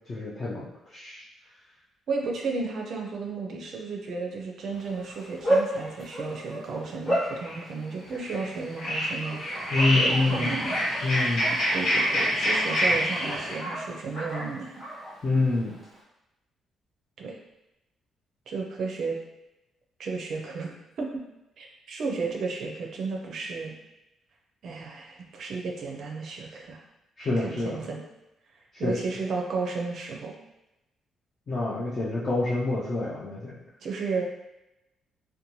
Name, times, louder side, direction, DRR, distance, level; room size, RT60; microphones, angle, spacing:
voice 1, 0.1-1.2 9.7-10.5 11.0-11.5 15.2-15.7 27.2-27.8 28.8-29.0 31.5-33.6, left 2 dB, 30° left, -7 dB, 0.4 m, -27 dB
voice 2, 2.1-10.7 11.5-14.8 17.2-17.4 18.5-19.2 20.0-21.2 21.6-23.7 24.6-26.8 27.2-28.0 28.8-30.3 33.8-34.2, right 4 dB, 50° right, 0 dB, 0.4 m, -33 dB
Bark, 4.7-16.0, right 1 dB, 5° left, 1.0 m, -34 dB
sound 1, 7.2-7.6 8.1-8.5 8.8-13.6, equal, 60° left, 1.1 m, -26 dB
2.6 x 2.1 x 3.0 m, 0.94 s
cardioid pair, 165°, 0 cm